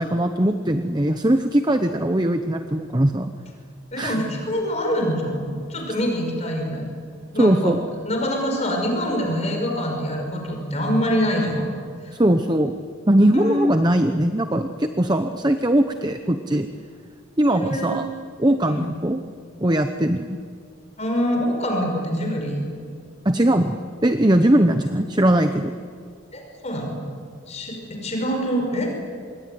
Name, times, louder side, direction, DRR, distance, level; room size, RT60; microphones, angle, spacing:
voice 1, 0.0-3.3 4.0-4.2 7.4-7.8 12.2-12.8 13.1-16.7 17.4-18.1 18.4-19.2 19.6-20.4 23.2-25.7, right 1 dB, 20° right, 7 dB, 0.9 m, -20 dB
voice 2, 3.9-6.9 7.3-7.7 8.0-11.7 12.0-12.1 13.3-13.7 17.5-18.0 18.6-18.9 21.0-22.6 26.3-27.0 27.5-28.9, equal, 35° left, 2 dB, 5.5 m, -25 dB
27.0 x 22.5 x 9.4 m, 2.1 s
head